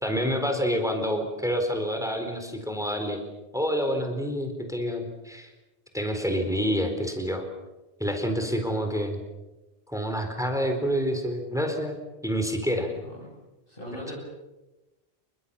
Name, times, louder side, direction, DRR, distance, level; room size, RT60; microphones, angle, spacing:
voice 1, 0.0-3.2 3.5-5.5 5.9-7.4 8.0-9.2 9.9-12.0 12.2-12.9 14.1-14.2, equal, 5° right, 5 dB, 4.1 m, -28 dB
voice 2, 12.7-13.3 13.7-14.1, equal, 65° left, -5 dB, 7.9 m, -39 dB
28.5 x 23.5 x 7.2 m, 1.1 s
omnidirectional pair, 1.0 m